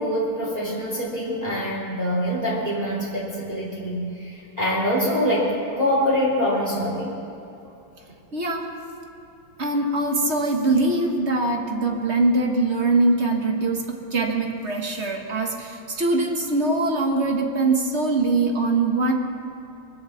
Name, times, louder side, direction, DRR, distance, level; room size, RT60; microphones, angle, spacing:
voice 1, 0.0-7.1, equal, 15° right, -6 dB, 3.1 m, -24 dB
voice 2, 8.3-8.7 9.6-19.1, right 2 dB, 35° right, 2 dB, 1.4 m, -22 dB
23.5 x 8.0 x 7.2 m, 2.9 s
omnidirectional pair, 2.4 m